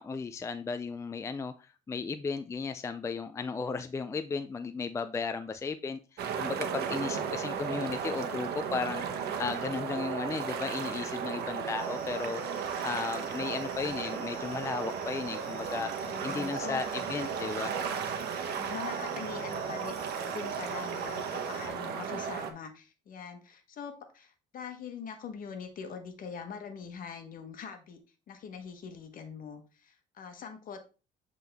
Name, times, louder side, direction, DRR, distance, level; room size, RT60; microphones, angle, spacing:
voice 1, 0.0-15.9 16.2-17.7, left 4 dB, 15° left, 9 dB, 0.4 m, -35 dB
sound 1, 6.2-22.5, right 7 dB, 75° right, 1.0 m, -35 dB
sound 2, 11.8-21.7, left 3 dB, 35° left, 1.9 m, -53 dB
voice 2, 15.9-16.8 18.5-20.0 20.3-28.0 28.3-30.8, left 6 dB, 55° left, 7 dB, 1.3 m, -43 dB
7.7 x 3.7 x 3.4 m, 0.33 s
cardioid pair, 110°, 17 cm